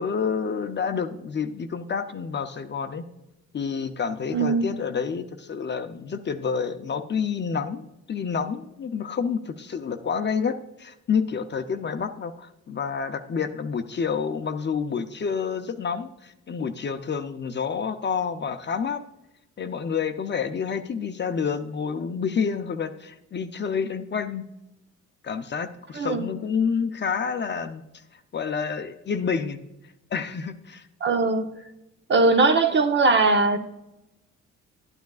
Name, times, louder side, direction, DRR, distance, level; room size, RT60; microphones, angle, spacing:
voice 1, 0.0-3.0 3.5-19.0 19.6-24.4 25.2-29.6 30.1-30.9, left 6 dB, 35° left, 8 dB, 0.6 m, -29 dB
voice 2, 4.3-4.6 25.9-26.2 31.0-31.5 32.1-33.6, right 3 dB, 35° right, 6 dB, 0.9 m, -20 dB
11.5 x 9.3 x 2.4 m, 0.89 s
cardioid pair, 90°, 30 cm